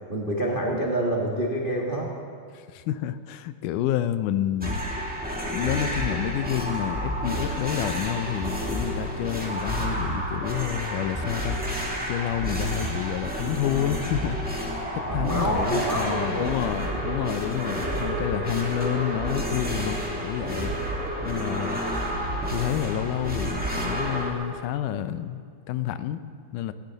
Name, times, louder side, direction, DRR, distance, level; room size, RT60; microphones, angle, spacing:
voice 1, 0.1-2.1 15.0-16.5 16.9-17.0, right 1 dB, 30° right, -2 dB, 0.9 m, -27 dB
voice 2, 2.5-4.8 5.5-11.6 12.1-14.4 14.9-20.7 21.3-21.8 22.5-25.4 25.7-26.2 26.5-26.7, left 11 dB, 85° left, 12 dB, 2.2 m, -29 dB
sound 1, 4.6-24.3, equal, 5° right, 1.7 m, -30 dB
19.0 x 17.5 x 4.0 m, 2.1 s
omnidirectional pair, 3.6 m